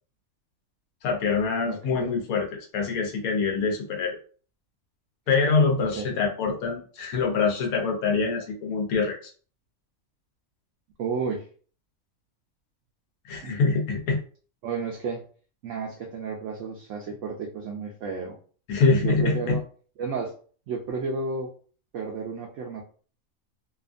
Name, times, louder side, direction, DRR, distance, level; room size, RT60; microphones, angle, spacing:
voice 1, 1.0-2.5 2.7-4.2 5.3-9.2 13.3-14.2 18.7-19.6, left 4 dB, 80° left, 1 dB, 1.2 m, -24 dB
voice 2, 1.7-2.1 6.0-6.2 11.0-11.4 13.4-13.6 14.6-15.2 15.6-18.4 19.0-19.6 20.0-20.3 20.7-21.5 21.9-22.8, right 4 dB, 70° right, 0 dB, 0.8 m, -32 dB
2.8 x 2.4 x 2.4 m, 0.42 s
omnidirectional pair, 1.5 m